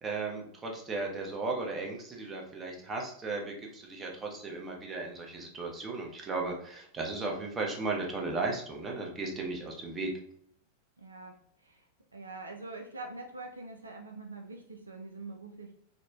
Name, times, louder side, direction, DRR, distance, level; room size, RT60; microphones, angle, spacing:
voice 1, 0.0-10.1, right 3 dB, 20° right, 0 dB, 0.7 m, -35 dB
voice 2, 11.0-11.9 12.1-15.7, right 3 dB, 75° right, 3 dB, 0.3 m, -44 dB
3.8 x 2.1 x 2.2 m, 0.66 s
figure-of-eight pair, 90°, 0 cm